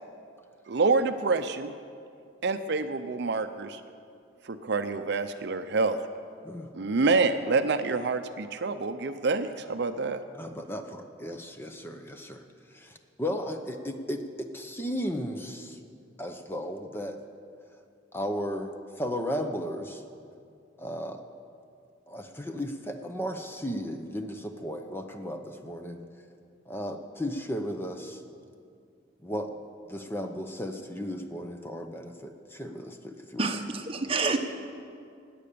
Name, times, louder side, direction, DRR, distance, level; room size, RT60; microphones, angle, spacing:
voice 1, 0.7-1.7 2.4-3.8 4.5-6.0 6.7-10.2, right 3 dB, 55° right, 9 dB, 0.6 m, -27 dB
voice 2, 10.3-12.4 12.7-14.2 14.5-15.8 16.2-17.2 18.1-18.7 19.0-20.0 20.8-21.2 22.1-26.0 26.7-28.2 29.2-29.5 29.9-33.5, equal, 10° left, 5 dB, 0.7 m, -35 dB
voice 3, 33.4-34.4, right 3 dB, 30° right, 4 dB, 1.0 m, -28 dB
18.5 x 8.7 x 6.8 m, 2.4 s
head